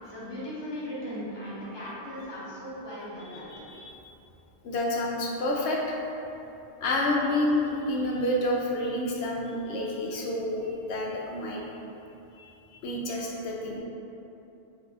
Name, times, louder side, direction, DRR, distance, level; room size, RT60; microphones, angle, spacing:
voice 1, 0.0-3.4, equal, 25° left, -9 dB, 1.0 m, -37 dB
voice 2, 3.2-4.0 4.6-6.0 6.8-11.6 12.4-13.8, left 1 dB, 80° left, -2 dB, 0.8 m, -29 dB
3.8 x 2.6 x 3.9 m, 2.9 s
omnidirectional pair, 1.1 m